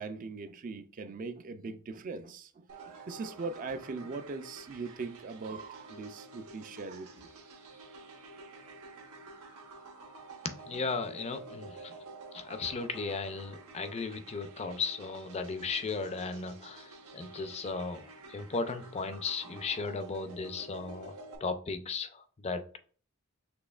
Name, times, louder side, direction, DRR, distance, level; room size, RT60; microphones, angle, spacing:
voice 1, 0.0-7.3, right 4 dB, 40° right, 0.4 m, -40 dB
sound 1, 2.7-21.3, right 2 dB, 75° right, 1.0 m, -50 dB
voice 2, 10.4-11.9 12.3-16.9 17.1-18.0 18.3-21.1 21.4-22.8, left 4 dB, 30° left, 0.4 m, -36 dB
6.1 x 3.1 x 2.3 m
head